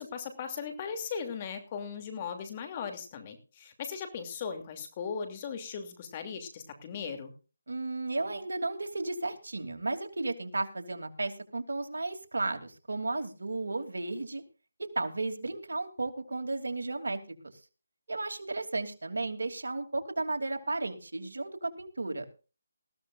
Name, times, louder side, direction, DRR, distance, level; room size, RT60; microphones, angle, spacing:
voice 1, 0.0-7.3, left 6 dB, 25° left, 7 dB, 2.7 m, -38 dB
voice 2, 7.7-14.4 14.8-17.2 18.1-22.3, right 2 dB, 75° right, 5 dB, 2.9 m, -34 dB
20.0 x 15.5 x 2.5 m, 0.35 s
figure-of-eight pair, 160°, 0 cm